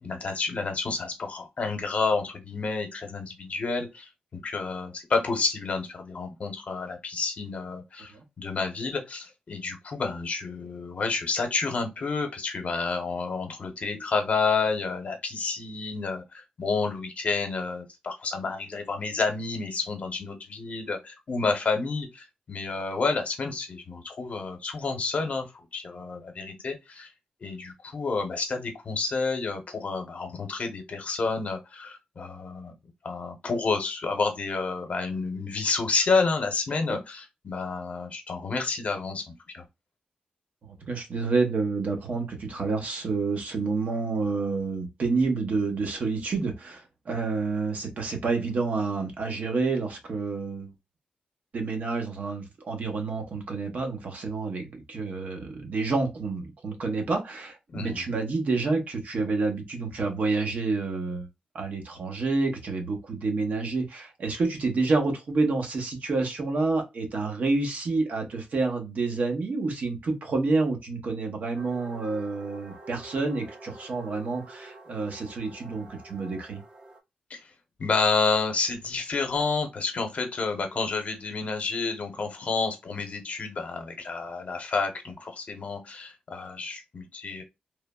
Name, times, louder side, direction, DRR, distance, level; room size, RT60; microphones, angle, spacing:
voice 1, 0.0-25.5 25.7-27.1 27.4-32.7 33.0-39.6 57.7-58.0 77.3-77.4 77.8-87.4, left 4 dB, 50° left, 0.8 m, -30 dB
voice 2, 40.7-50.7 51.5-61.3 61.5-76.6, right 3 dB, 60° right, 0.8 m, -28 dB
sound 1, 71.5-77.0, right 2 dB, 30° right, 0.6 m, -48 dB
3.1 x 2.0 x 2.2 m
wide cardioid pair, 100°, 3 cm